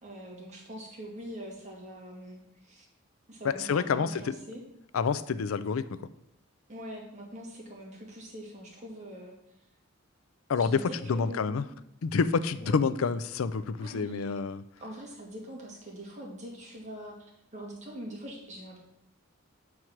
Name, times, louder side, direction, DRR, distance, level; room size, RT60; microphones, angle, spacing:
voice 1, 0.0-2.9 3.3-4.6 6.7-9.3 10.6-11.6 12.6-12.8 13.8-14.4 14.8-18.8, right 1 dB, 35° right, -1 dB, 2.2 m, -43 dB
voice 2, 3.4-4.3 4.9-6.0 10.5-11.7 12.0-14.6, left 5 dB, 85° left, 14 dB, 0.4 m, -28 dB
7.8 x 4.7 x 5.9 m, 0.79 s
head